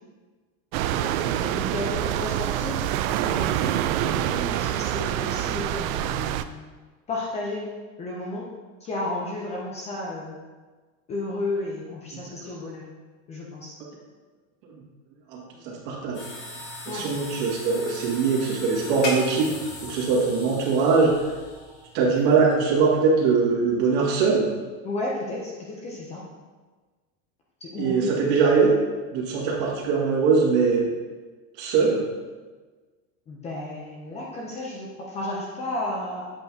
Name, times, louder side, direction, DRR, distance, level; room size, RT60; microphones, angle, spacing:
sound 1, 0.7-6.4, right 12 dB, 85° right, 0.5 m, -26 dB
voice 1, 1.5-6.5 7.1-8.5 8.8-10.4 11.1-12.8 13.3-13.8 16.8-17.1 24.8-26.3 27.6-28.1 33.3-36.3, left 2 dB, 15° left, -3 dB, 0.5 m, -33 dB
voice 2, 15.3-16.2 16.9-21.3 21.9-24.5 27.8-28.8 29.1-30.9 31.6-32.0, right 4 dB, 55° right, -3 dB, 1.9 m, -22 dB
sound 2, 16.1-22.9, left 1 dB, 50° left, 2.1 m, -38 dB
7.9 x 6.7 x 2.7 m, 1.3 s
supercardioid pair, 170°, 40 cm